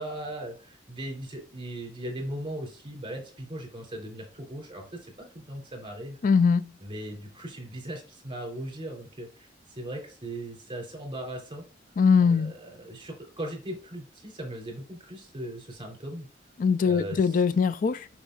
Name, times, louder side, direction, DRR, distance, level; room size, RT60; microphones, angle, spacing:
voice 1, 0.0-6.2 6.8-11.6 12.2-16.3 16.8-17.4, right 1 dB, 30° right, 3.7 m, -38 dB
voice 2, 6.2-6.7 12.0-12.5 16.6-18.1, left 5 dB, 45° left, 0.3 m, -22 dB
10.0 x 5.3 x 2.5 m
head